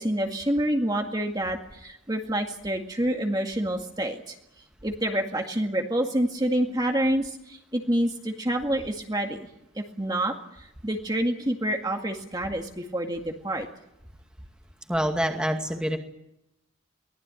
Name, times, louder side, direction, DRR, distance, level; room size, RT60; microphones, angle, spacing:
voice 1, 0.0-4.3 4.8-9.5 9.8-13.7, right 1 dB, 20° right, 3 dB, 2.0 m, -27 dB
voice 2, 14.9-16.0, equal, 5° right, 3 dB, 2.2 m, -26 dB
23.5 x 18.5 x 9.0 m, 0.83 s
head